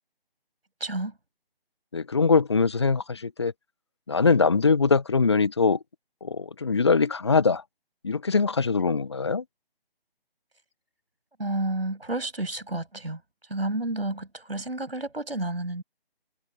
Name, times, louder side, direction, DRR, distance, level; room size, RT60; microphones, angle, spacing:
voice 1, 0.8-1.1 11.4-13.2 13.5-15.8, right 2 dB, 75° right, 7.3 m, -30 dB
voice 2, 1.9-3.5 4.1-5.8 6.2-7.6 8.0-9.4, left 4 dB, 30° left, 0.6 m, -22 dB
figure-of-eight pair, 150°, 30 cm